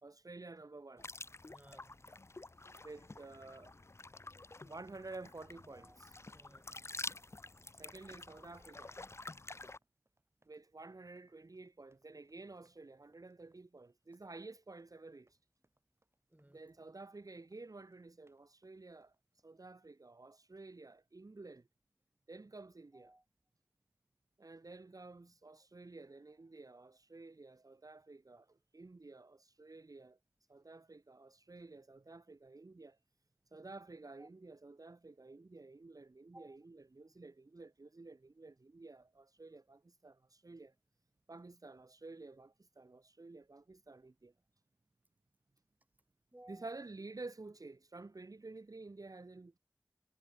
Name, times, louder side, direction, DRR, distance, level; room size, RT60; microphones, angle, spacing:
voice 1, 0.0-1.1 2.8-3.8 4.6-6.2 6.7-6.8 7.7-9.0 10.5-15.4 16.5-19.1 19.4-21.7 22.3-23.1 24.4-30.2 30.5-33.0 33.5-40.7 41.3-44.3 46.5-49.5, right 3 dB, 65° right, 0.8 m, -52 dB
sound 1, 1.0-9.8, left 2 dB, 40° left, 0.5 m, -49 dB
voice 2, 1.4-2.2 5.7-7.0 16.3-16.6 22.9-23.2 34.2-34.3 36.3-36.6 46.3-46.8, right 1 dB, 25° right, 2.0 m, -60 dB
sound 2, 9.6-19.5, right 1 dB, 40° right, 5.5 m, -83 dB
wide cardioid pair, 45°, 7 cm